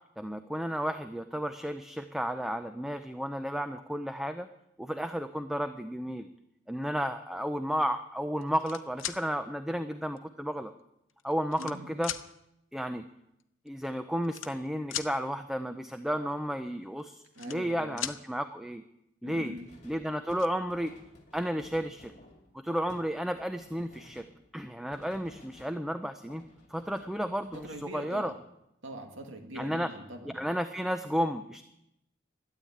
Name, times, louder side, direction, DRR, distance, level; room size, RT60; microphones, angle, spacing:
voice 1, 0.2-4.5 4.8-6.3 6.7-10.7 11.2-12.1 12.7-13.1 13.7-18.8 19.2-19.5 19.8-20.9 21.3-22.1 22.6-24.3 24.5-26.4 26.7-28.3 29.5-29.9 30.3-31.6, equal, ahead, 8 dB, 0.5 m, -32 dB
sound 1, 8.4-9.2 10.2-10.3 11.1-11.8 12.0-12.2 13.4-13.5 13.7-13.9 14.2-15.1 17.0-17.7 18.0-18.2 19.7-19.8 20.1-20.5, left 11 dB, 85° left, 0.8 m, -37 dB
voice 2, 11.6-11.9 17.4-18.1 19.2-19.7 27.5-28.4 28.8-30.4, right 1 dB, 75° right, 4 dB, 2.1 m, -43 dB
sound 2, 19.6-26.0 26.3-28.2, left 1 dB, 40° left, 2.5 m, -56 dB
12.5 x 9.9 x 8.6 m, 0.82 s
head